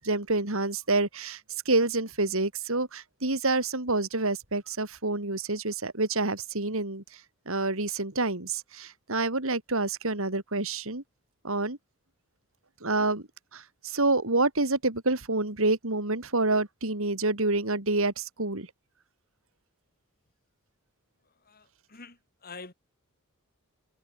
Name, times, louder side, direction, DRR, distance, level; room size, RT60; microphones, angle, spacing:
voice 1, 0.0-1.4 1.7-7.2 7.5-11.0 11.4-11.8 12.8-18.7, right 2 dB, 65° right, 3.5 m, -28 dB
voice 2, 21.5-22.2 22.4-22.7, left 4 dB, 40° left, 5.2 m, -45 dB
head